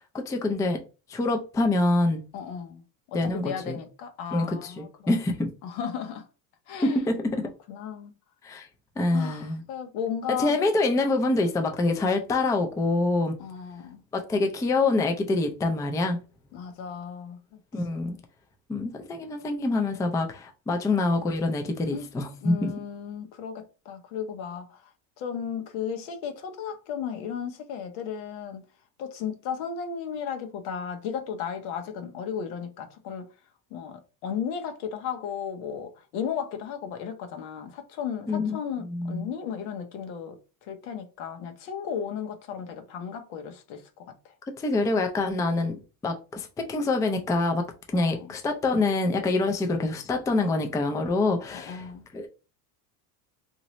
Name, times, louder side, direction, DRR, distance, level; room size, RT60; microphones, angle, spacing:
voice 1, 0.1-0.8 1.1-2.2 3.1-3.8 4.3-5.5 6.8-7.4 8.4-8.7 9.0-9.6 10.3-13.4 14.1-16.2 17.7-18.1 18.7-22.7 38.3-39.3 44.6-45.8 46.0-47.7 47.9-52.3, left 2 dB, 10° left, 0.3 m, -26 dB
voice 2, 2.3-2.8 3.1-5.2 5.6-6.2 6.7-7.1 7.7-8.1 9.1-10.5 13.4-14.0 16.5-17.6 17.9-18.2 21.9-22.1 22.4-24.8 25.2-28.6 29.0-33.3 33.7-44.3 47.9-48.3 51.5-52.0, left 7 dB, 85° left, 1.0 m, -35 dB
2.9 x 2.7 x 3.0 m
supercardioid pair, 100°, 50 cm